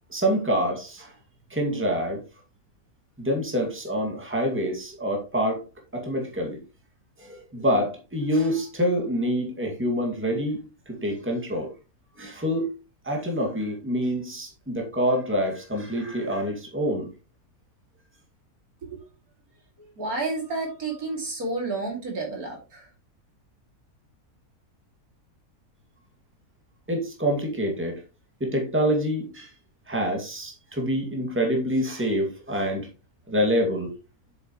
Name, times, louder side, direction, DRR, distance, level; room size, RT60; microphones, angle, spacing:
voice 1, 0.1-1.1 1.5-2.2 3.2-5.6 5.9-6.6 7.2-11.7 12.2-12.7 13.0-17.1 26.9-28.0 28.4-29.5 29.9-32.9 33.3-33.9, equal, 10° right, 1 dB, 2.2 m, -26 dB
voice 2, 19.8-22.9, right 3 dB, 70° right, 1 dB, 3.2 m, -31 dB
8.5 x 6.9 x 3.1 m, 0.29 s
omnidirectional pair, 1.6 m